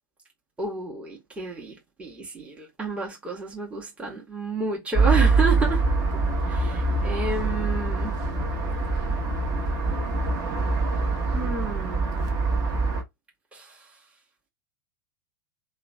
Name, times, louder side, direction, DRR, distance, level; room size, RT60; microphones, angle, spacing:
voice 1, 0.6-5.8 6.5-8.1 11.3-12.0 13.5-13.8, right 3 dB, 10° right, 1.0 m, -31 dB
sound 1, 4.9-13.0, right 3 dB, 40° right, 1.0 m, -24 dB
3.0 x 2.1 x 2.4 m
figure-of-eight pair, 90°, 11 cm